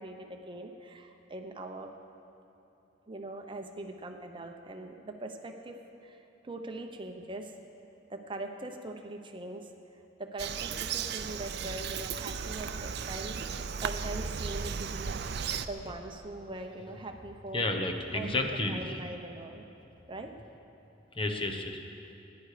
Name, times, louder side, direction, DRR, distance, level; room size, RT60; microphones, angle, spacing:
voice 1, 0.0-1.9 3.1-7.5 8.1-15.2 15.7-17.7 18.1-19.6 20.1-20.3, right 2 dB, 25° right, 4 dB, 0.8 m, -42 dB
Bird vocalization bird call bird song, 10.4-15.7, right 6 dB, 60° right, 0.5 m, -35 dB
voice 2, 17.5-19.0 21.2-21.8, left 2 dB, 30° left, 4 dB, 1.0 m, -31 dB
19.0 x 10.5 x 5.0 m, 2.9 s
head